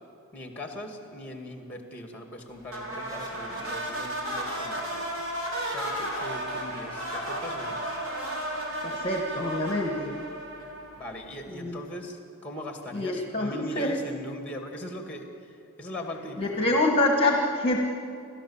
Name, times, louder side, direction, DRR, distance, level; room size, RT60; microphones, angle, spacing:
voice 1, 0.3-5.1 5.7-7.8 11.0-16.7, equal, 5° left, 3 dB, 2.1 m, -40 dB
sound 1, 2.7-11.1, right 1 dB, 70° right, 4.4 m, -33 dB
voice 2, 8.8-10.2 11.5-11.7 12.9-14.0 16.4-17.8, left 2 dB, 25° left, 2 dB, 1.4 m, -26 dB
28.5 x 12.5 x 7.3 m, 2.5 s
head